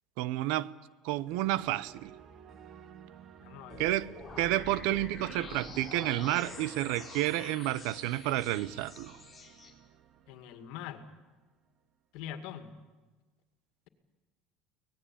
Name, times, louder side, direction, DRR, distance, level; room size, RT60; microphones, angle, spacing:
voice 1, 0.2-0.7 1.0-2.1 3.8-9.2, right 15 dB, 75° right, 0.7 m, -30 dB
sound 1, 1.3-11.3, right 8 dB, 40° right, 1.2 m, -53 dB
voice 2, 3.4-3.8 10.3-11.0 12.1-12.7, left 10 dB, 70° left, 2.1 m, -43 dB
sound 2, 3.7-9.7, left 4 dB, 15° left, 5.0 m, -47 dB
24.0 x 18.5 x 8.8 m
cardioid pair, 145°, 0 cm